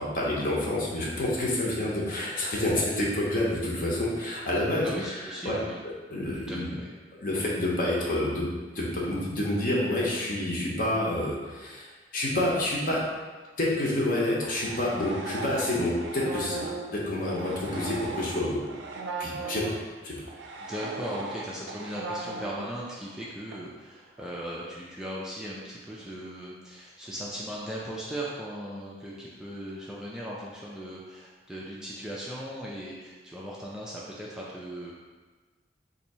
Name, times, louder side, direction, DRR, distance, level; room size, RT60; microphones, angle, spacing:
voice 1, 0.0-4.9 5.4-5.6 6.1-6.7 7.2-8.5 8.7-11.9 12.1-13.0 13.6-18.6 19.2-19.7 20.0-20.1, left 1 dB, 50° left, -4 dB, 0.8 m, -28 dB
voice 2, 4.8-5.8 6.3-6.9 20.7-34.9, equal, 5° right, -6 dB, 0.3 m, -38 dB
sound 1, 14.1-19.8 20.3-23.2 23.5-23.6 24.2-24.5, right 3 dB, 80° right, 0.4 m, -38 dB
2.7 x 2.6 x 4.2 m, 1.3 s
head